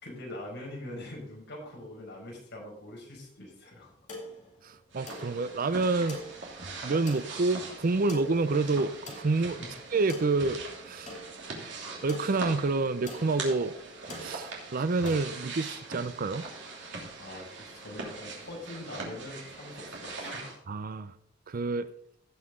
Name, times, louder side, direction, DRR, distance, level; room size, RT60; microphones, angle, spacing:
voice 1, 0.0-3.9 9.6-9.7 17.2-20.6, left 1 dB, 60° left, -2 dB, 5.0 m, -43 dB
sound 1, 3.8-15.3, left 1 dB, 40° left, 2.4 m, -46 dB
voice 2, 4.6-6.2 6.8-9.7 9.9-11.2 12.0-13.7 14.2-16.5 20.7-21.1 21.5-21.9, right 3 dB, 45° right, 14 dB, 0.5 m, -28 dB
sound 2, 4.9-20.6, right 3 dB, 65° right, 2.8 m, -42 dB
17.0 x 5.8 x 3.7 m, 0.65 s
head